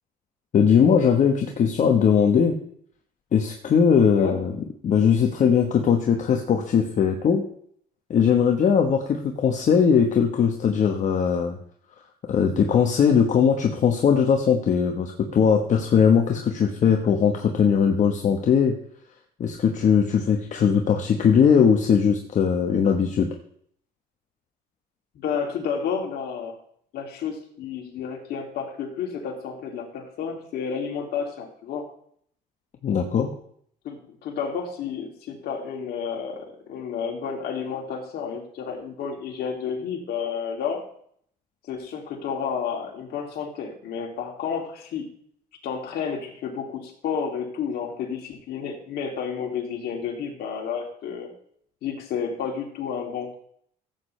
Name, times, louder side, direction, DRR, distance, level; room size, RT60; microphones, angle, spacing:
voice 1, 0.5-2.5 3.3-4.5 4.8-7.4 8.1-11.6 12.3-18.7 19.4-23.3 32.8-33.3, left 7 dB, 45° left, 3 dB, 1.1 m, -20 dB
voice 2, 25.1-26.6 26.9-31.8 33.8-40.8 41.7-45.1 45.6-51.3 51.8-53.3, left 6 dB, 70° left, 0 dB, 2.7 m, -31 dB
14.5 x 8.4 x 3.2 m, 0.64 s
cardioid pair, 110°, 17 cm